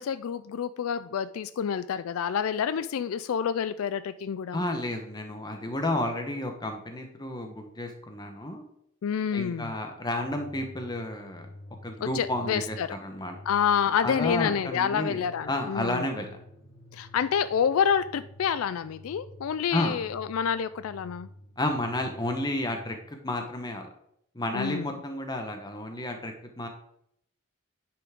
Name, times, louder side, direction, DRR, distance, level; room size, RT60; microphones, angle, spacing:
voice 1, 0.0-4.6 9.0-9.7 12.0-12.9 13.5-16.1 16.9-21.3 24.5-24.9, left 7 dB, 80° left, 0.4 m, -28 dB
voice 2, 4.5-8.6 9.3-11.5 11.8-13.4 14.0-16.3 19.7-20.0 21.6-23.9 24.3-26.7, left 1 dB, 20° left, 1.0 m, -31 dB
sound 1, 10.1-22.9, left 1 dB, 45° left, 2.9 m, -49 dB
9.9 x 5.8 x 3.6 m
head